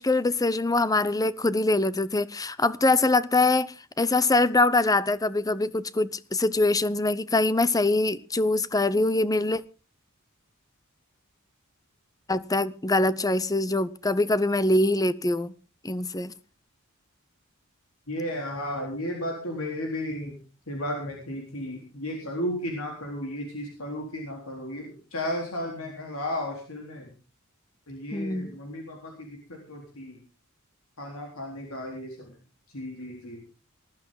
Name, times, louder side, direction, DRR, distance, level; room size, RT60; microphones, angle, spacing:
voice 1, 0.0-9.6 12.3-15.5 15.8-16.3 28.1-28.5, left 2 dB, 15° left, 0.7 m, -24 dB
voice 2, 18.1-20.4 20.7-27.1 27.9-30.2 31.0-32.3 32.7-33.4, left 1 dB, 75° left, 4.0 m, -34 dB
19.5 x 13.0 x 3.9 m
head